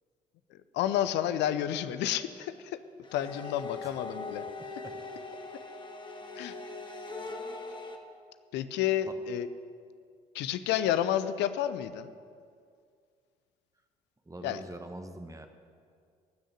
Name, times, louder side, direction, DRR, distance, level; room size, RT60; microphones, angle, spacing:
voice 1, 0.5-2.8 3.1-4.4 6.4-6.6 8.5-9.5 10.3-12.1 14.4-14.6, left 11 dB, 60° left, 13 dB, 0.7 m, -30 dB
sound 1, 3.0-8.0, left 3 dB, 25° left, 1.6 m, -41 dB
voice 2, 14.3-15.5, right 1 dB, 15° right, 6 dB, 1.2 m, -43 dB
15.5 x 6.3 x 9.4 m, 2.2 s
figure-of-eight pair, 50°, 20 cm